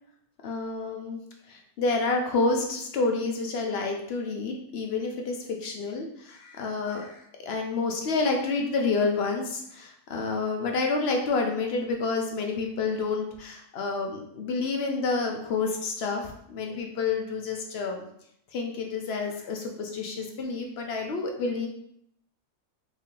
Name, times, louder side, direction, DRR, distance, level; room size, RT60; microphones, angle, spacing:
voice 1, 0.4-1.2 1.5-18.1 18.5-21.7, left 3 dB, 60° left, 2 dB, 0.8 m, -29 dB
3.1 x 2.7 x 3.6 m, 0.72 s
omnidirectional pair, 1.3 m